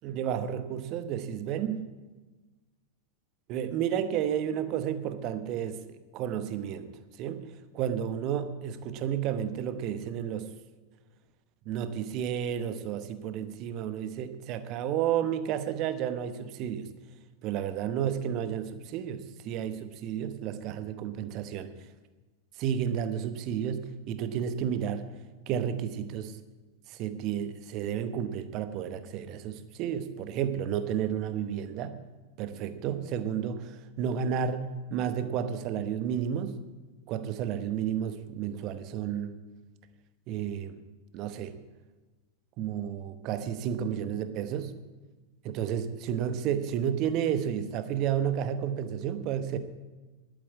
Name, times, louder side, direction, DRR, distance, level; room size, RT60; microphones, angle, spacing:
voice 1, 0.0-1.9 3.5-5.8 6.1-6.9 7.2-10.5 11.6-16.9 17.4-21.7 22.6-25.1 25.5-26.4 26.9-31.9 32.4-36.6 37.1-39.3 40.3-40.8 41.1-41.6 42.6-44.7 45.4-49.6, right 9 dB, 40° right, 11 dB, 1.0 m, -31 dB
12.0 x 8.6 x 8.4 m, 1.2 s
figure-of-eight pair, 90°, 0 cm